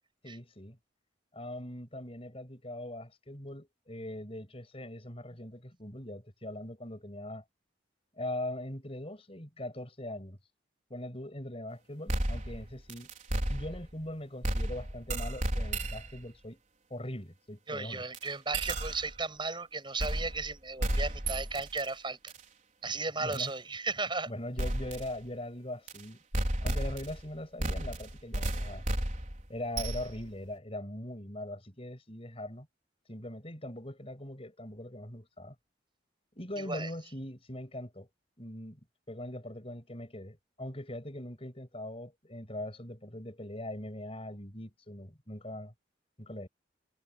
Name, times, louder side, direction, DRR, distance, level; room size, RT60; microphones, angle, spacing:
voice 1, 0.2-0.8 1.3-7.4 8.2-10.4 10.9-13.1 13.5-16.6 16.9-18.0 23.2-23.5 24.3-26.2 26.6-28.8 29.5-32.7 33.1-35.5 36.3-38.1 38.4-38.8 39.1-45.7 46.2-46.5, left 1 dB, 30° left, 6.4 m, -41 dB
sound 1, 12.1-14.0 14.4-16.2 18.1-18.2 18.5-19.2 20.0-20.5 20.8-21.9 22.3-22.4 23.3-23.5 24.6-25.1 25.9-26.0 26.3-27.3 27.6-30.3, right 1 dB, 40° right, 4.7 m, -33 dB
voice 2, 17.7-22.3 22.8-24.3 36.6-36.9, right 3 dB, 25° right, 7.9 m, -35 dB
head